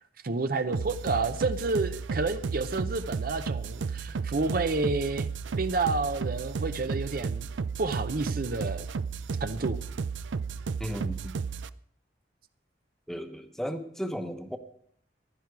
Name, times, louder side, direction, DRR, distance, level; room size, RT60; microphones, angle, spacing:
voice 1, 0.2-5.3 5.5-7.5 7.8-8.9 9.4-9.8, right 3 dB, 50° right, 0.7 m, -30 dB
sound 1, 0.7-11.7, right 5 dB, 85° right, 0.5 m, -33 dB
voice 2, 10.8-11.3 13.1-14.6, equal, ahead, 1.0 m, -35 dB
15.5 x 12.0 x 4.7 m
head